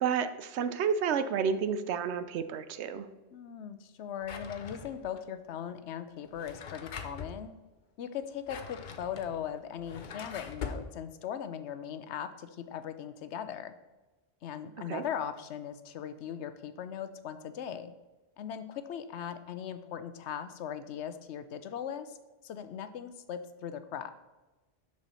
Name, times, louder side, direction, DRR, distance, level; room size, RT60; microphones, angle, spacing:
voice 1, 0.0-3.1 14.9-15.0, right 7 dB, 85° right, 12 dB, 0.9 m, -30 dB
voice 2, 3.3-7.5 8.0-13.7 14.4-17.9 18.4-22.2 22.4-24.1, left 8 dB, 85° left, 11 dB, 0.9 m, -39 dB
Drawer open or close, 4.2-5.2 6.2-7.4 8.2-10.9, left 6 dB, 50° left, 0.7 m, -42 dB
6.4 x 6.2 x 4.2 m, 1.1 s
omnidirectional pair, 1.1 m